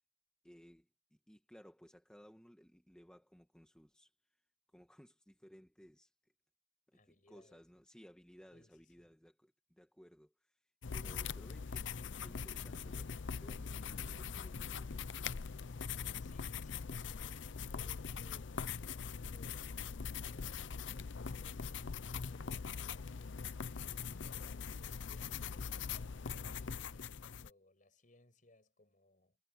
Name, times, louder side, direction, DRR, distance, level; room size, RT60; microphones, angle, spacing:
voice 1, 0.4-4.1 4.7-6.1 6.9-10.6 10.9-15.3, equal, 5° left, 1.5 m, -60 dB
voice 2, 6.9-7.6 8.5-9.1 16.1-19.7 20.2-23.4 24.2-29.4, left 2 dB, 45° left, 6.0 m, -65 dB
sound 1, 10.8-27.5, left 6 dB, 75° left, 0.6 m, -42 dB
head